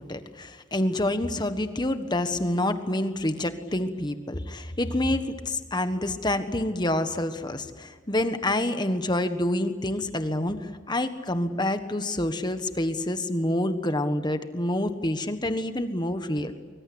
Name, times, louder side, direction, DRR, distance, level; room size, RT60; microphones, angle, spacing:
voice 1, 0.0-16.5, left 1 dB, 20° left, 9 dB, 1.4 m, -27 dB
24.0 x 24.0 x 8.7 m, 1.4 s
head